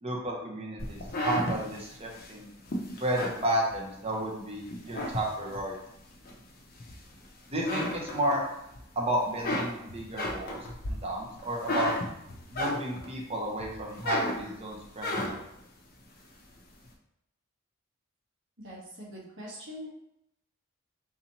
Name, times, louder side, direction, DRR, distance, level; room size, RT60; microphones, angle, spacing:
voice 1, 0.0-2.5 3.0-5.8 7.5-8.4 9.0-10.6 10.9-11.9 12.5-15.4, right 1 dB, 30° right, -1 dB, 0.7 m, -32 dB
sound 1, 0.8-4.2 4.6-5.7 6.2-7.2 7.5-8.8 9.1-13.2 13.6-15.6, left 1 dB, 45° left, 0.6 m, -34 dB
voice 2, 18.6-19.9, equal, 65° right, -5 dB, 1.2 m, -43 dB
4.0 x 2.7 x 2.8 m, 0.81 s
head